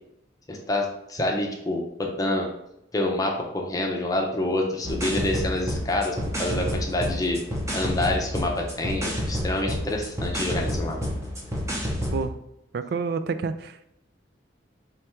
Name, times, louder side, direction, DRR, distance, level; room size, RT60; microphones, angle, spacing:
voice 1, 0.5-2.5 2.9-7.4 7.7-11.0, left 1 dB, 20° left, 0 dB, 0.7 m, -27 dB
sound 1, 4.8-12.2, equal, 15° right, 0.9 m, -29 dB
voice 2, 12.7-13.9, right 4 dB, 55° right, 11 dB, 0.3 m, -29 dB
3.5 x 3.2 x 4.4 m, 0.80 s
head